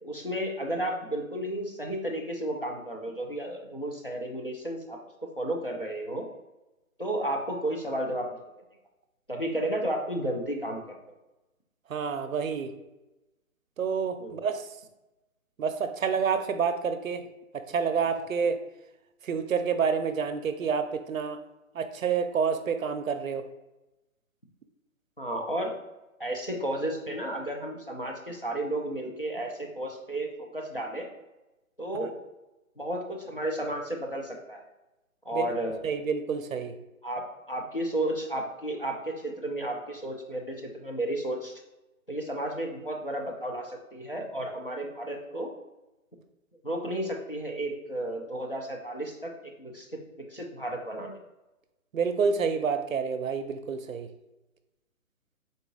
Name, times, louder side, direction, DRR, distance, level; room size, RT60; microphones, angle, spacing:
voice 1, 0.0-5.0 5.4-6.3 7.0-8.3 9.3-10.8 14.2-14.4 25.2-25.8 26.2-31.1 31.8-32.2 32.8-34.6 35.3-35.8 37.0-41.5 42.1-45.5 46.6-49.9 50.3-51.2, right 1 dB, 40° left, 0 dB, 0.4 m, -33 dB
voice 2, 11.9-12.7 13.8-14.6 15.6-17.2 17.7-18.6 19.2-21.4 21.7-23.4 35.3-35.5 35.8-36.7 51.9-54.1, right 6 dB, 70° right, 9 dB, 0.5 m, -28 dB
3.8 x 2.4 x 3.8 m, 1.0 s
hypercardioid pair, 180°, 42 cm